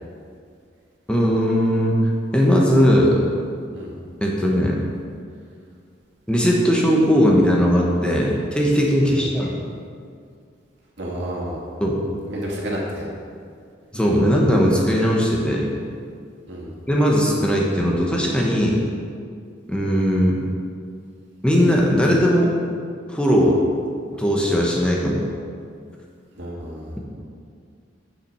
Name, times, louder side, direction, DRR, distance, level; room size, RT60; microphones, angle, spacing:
voice 1, 1.1-2.0 2.3-3.2 4.2-4.8 6.3-9.6 11.8-12.0 13.9-15.7 16.9-18.8 19.7-20.4 21.4-22.6 23.1-23.6 24.2-25.2, equal, 5° left, -3 dB, 1.1 m, -18 dB
voice 2, 11.0-11.6 12.3-13.1 16.5-16.7 26.4-27.0, equal, 65° right, -3 dB, 2.3 m, -30 dB
9.3 x 7.3 x 5.6 m, 2.2 s
head